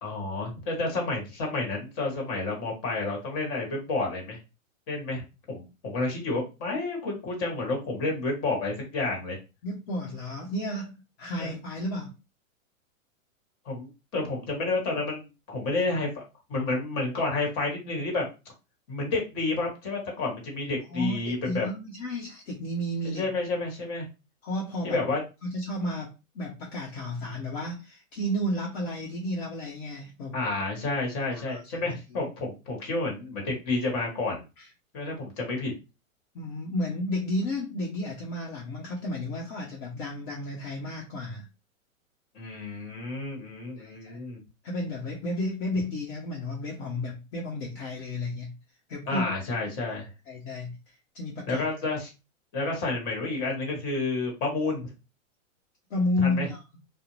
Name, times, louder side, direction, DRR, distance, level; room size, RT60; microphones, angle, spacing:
voice 1, 0.0-4.4 4.9-9.4 11.4-11.5 13.6-16.1 16.5-18.3 18.9-21.7 23.0-24.1 24.8-25.2 30.3-34.4 34.9-35.7 42.3-44.4 49.1-50.1 51.5-52.1 52.5-54.9 56.2-56.5, left 3 dB, 30° left, 0 dB, 1.2 m, -30 dB
voice 2, 9.6-12.1 20.9-23.2 24.4-25.0 25.4-26.1 26.3-30.4 31.3-31.6 34.6-34.7 36.3-41.5 43.8-44.2 44.6-48.6 48.9-49.3 50.3-51.6 55.9-56.6, left 1 dB, 50° left, -3 dB, 0.8 m, -32 dB
2.5 x 2.1 x 3.1 m, 0.28 s
hypercardioid pair, 140°, 41 cm